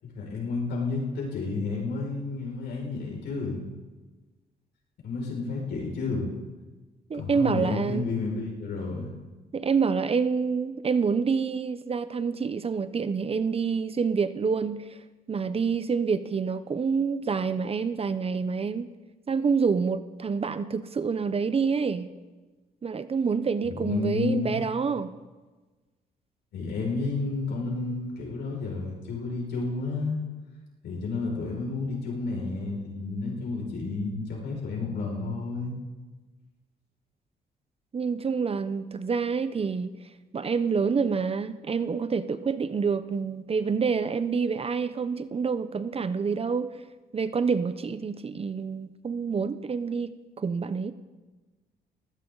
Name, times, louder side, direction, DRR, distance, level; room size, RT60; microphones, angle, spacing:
voice 1, 0.0-3.6 5.0-6.3 7.1-9.1 23.6-24.6 26.5-30.2 30.8-35.8, left 3 dB, 80° left, -2 dB, 5.9 m, -31 dB
voice 2, 7.1-8.1 9.5-14.9 15.3-18.9 19.3-22.1 22.8-25.1 37.9-39.9 40.3-46.8 47.1-50.9, right 5 dB, 35° right, 13 dB, 0.7 m, -27 dB
19.5 x 15.5 x 4.0 m, 1.3 s
cardioid pair, 95°, 17 cm